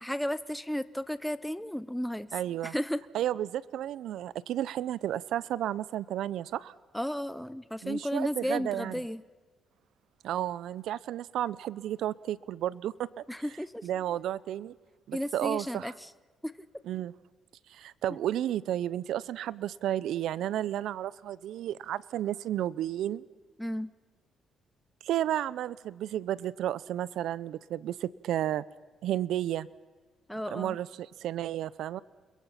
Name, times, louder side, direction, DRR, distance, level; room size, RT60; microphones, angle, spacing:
voice 1, 0.0-2.3 2.6-3.0 6.9-9.2 13.3-13.9 15.1-16.1 16.4-16.5 23.6-23.9 30.3-30.8, equal, 5° left, 15 dB, 0.7 m, -33 dB
voice 2, 2.3-2.7 3.1-6.7 7.8-8.9 10.2-13.2 13.8-14.7 15.1-15.9 16.9-17.1 17.7-23.2 25.0-28.6 29.0-29.7 30.5-32.0, right 12 dB, 80° right, 20 dB, 0.6 m, -32 dB
29.5 x 22.5 x 5.8 m, 1.4 s
cardioid pair, 90°, 0 cm